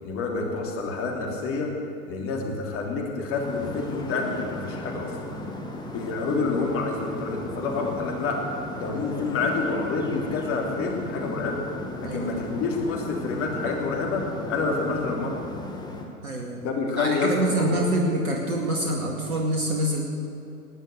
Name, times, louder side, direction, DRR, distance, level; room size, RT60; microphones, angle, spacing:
voice 1, 0.0-1.7 2.0-5.1 5.9-8.4 8.8-11.6 12.1-15.5 16.6-17.8, left 3 dB, 30° left, 0 dB, 3.1 m, -28 dB
sound 1, 3.3-16.0, left 1 dB, 10° left, 1.8 m, -36 dB
voice 2, 12.0-12.4 16.2-16.6 17.0-20.0, right 1 dB, 70° right, -1 dB, 2.3 m, -26 dB
20.0 x 8.9 x 8.0 m, 2.7 s
figure-of-eight pair, 105°, 45 cm